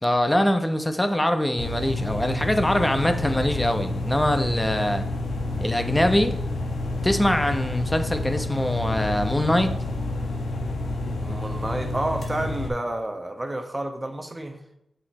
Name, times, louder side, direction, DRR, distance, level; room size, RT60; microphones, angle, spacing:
voice 1, 0.0-5.0 5.6-6.4 7.0-9.8, left 1 dB, 15° left, 7 dB, 0.9 m, -23 dB
sound 1, 1.6-12.7, left 2 dB, 85° left, 1.1 m, -29 dB
voice 2, 11.2-14.6, right 1 dB, 20° right, 5 dB, 1.1 m, -30 dB
7.3 x 5.8 x 4.3 m, 0.82 s
cardioid pair, 60°, 0 cm